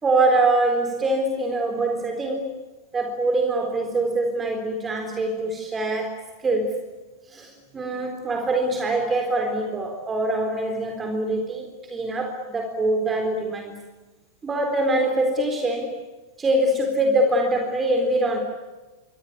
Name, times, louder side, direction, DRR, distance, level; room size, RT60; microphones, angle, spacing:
voice 1, 0.0-2.5 2.9-6.8 7.3-13.9 14.4-16.0 16.4-18.4, right 2 dB, 15° right, 4 dB, 3.9 m, -24 dB
28.5 x 24.5 x 8.4 m, 1.2 s
figure-of-eight pair, 90°, 0 cm